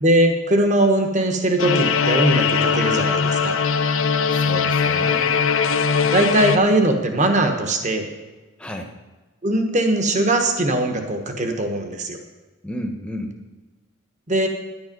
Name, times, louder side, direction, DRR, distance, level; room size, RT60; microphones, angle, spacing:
voice 1, 0.0-3.6 6.1-8.1 9.4-12.2 14.3-14.5, right 1 dB, 35° right, 5 dB, 1.2 m, -20 dB
sound 1, 1.6-6.6, left 6 dB, 65° left, 0.6 m, -20 dB
voice 2, 4.3-5.4 8.6-8.9 12.6-13.3, left 1 dB, 5° left, 2 dB, 0.9 m, -32 dB
10.5 x 10.5 x 5.3 m, 1.2 s
head